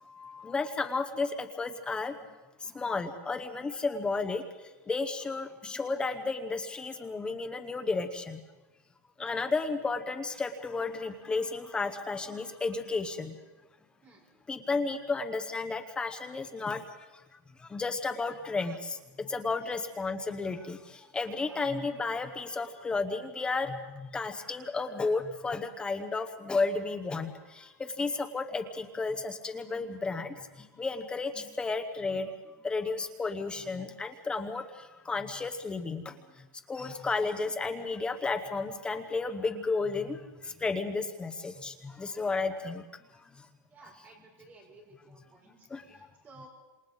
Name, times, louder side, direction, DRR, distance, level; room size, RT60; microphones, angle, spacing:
voice 1, 0.4-1.3 1.6-2.1 2.8-4.4 4.9-8.4 9.2-13.3 14.5-16.8 17.7-18.8 19.3-20.8 21.1-23.7 24.1-27.3 28.0-30.3 30.8-32.3 32.6-34.6 35.1-36.0 36.7-40.2 40.6-41.7 42.0-42.8 45.7-45.8, left 3 dB, 10° left, 7 dB, 0.9 m, -32 dB
voice 2, 43.7-46.5, right 2 dB, 20° right, -1 dB, 5.9 m, -56 dB
29.0 x 27.5 x 4.0 m, 1.1 s
supercardioid pair, 170°, 10 cm